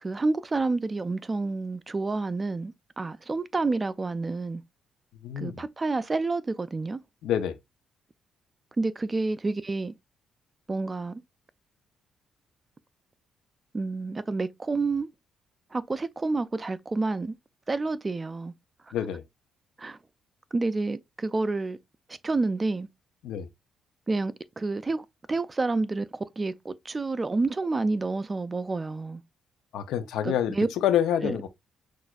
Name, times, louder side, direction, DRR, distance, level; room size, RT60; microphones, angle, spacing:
voice 1, 0.0-4.6 5.4-7.0 8.8-9.9 10.7-11.2 13.7-15.1 15.7-17.4 17.7-18.5 19.8-20.0 20.5-21.8 22.2-22.9 24.1-29.2 30.2-30.7 31.2-31.4, right 3 dB, 25° right, 0.4 m, -29 dB
voice 2, 5.2-5.6 7.2-7.6 18.9-19.2 23.2-23.5 29.7-31.5, left 10 dB, 85° left, 0.6 m, -27 dB
6.0 x 2.5 x 2.3 m
cardioid pair, 90°, 0 cm